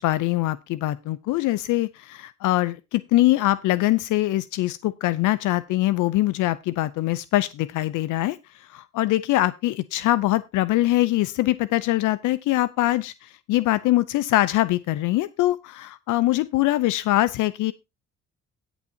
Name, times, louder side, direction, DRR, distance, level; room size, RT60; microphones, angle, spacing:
voice 1, 0.0-17.7, left 16 dB, 85° left, 16 dB, 0.6 m, -23 dB
17.5 x 7.1 x 2.8 m, 0.23 s
cardioid pair, 90°, 30 cm